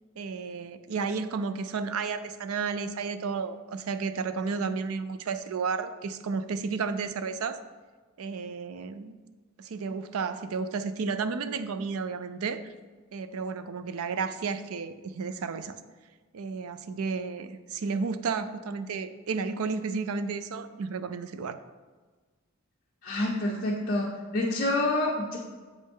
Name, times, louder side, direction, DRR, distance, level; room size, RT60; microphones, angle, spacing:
voice 1, 0.2-7.6 8.2-9.1 9.6-12.7 13.1-15.8 16.3-21.6, right 5 dB, 85° right, 12 dB, 0.4 m, -32 dB
voice 2, 23.0-24.1 24.3-25.4, left 2 dB, 45° left, -2 dB, 0.7 m, -27 dB
7.4 x 5.4 x 3.6 m, 1.4 s
head